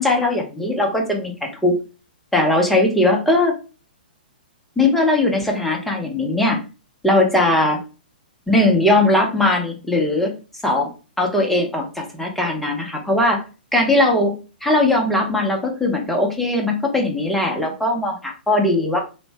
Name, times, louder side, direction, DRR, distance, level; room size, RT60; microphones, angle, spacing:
voice 1, 0.0-1.7 2.3-3.6 4.8-6.6 7.0-7.8 8.5-10.3 10.6-10.9 11.2-13.4 13.7-14.3 14.6-19.0, left 2 dB, 5° left, 0 dB, 0.6 m, -19 dB
2.5 x 2.1 x 3.1 m, 0.33 s
figure-of-eight pair, 115°, 5 cm